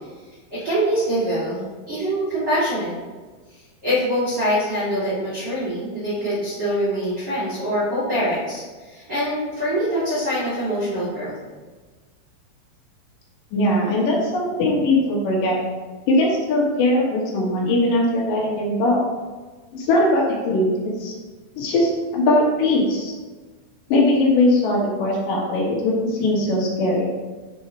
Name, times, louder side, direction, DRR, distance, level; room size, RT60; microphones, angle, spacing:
voice 1, 0.5-2.9 3.8-11.3, equal, 50° right, -11 dB, 1.3 m, -24 dB
voice 2, 13.5-15.6 16.1-19.1 19.7-20.7 21.0-21.1 21.6-23.1 23.9-27.1, left 1 dB, 65° left, -3 dB, 2.4 m, -20 dB
6.4 x 4.4 x 4.4 m, 1.3 s
omnidirectional pair, 5.5 m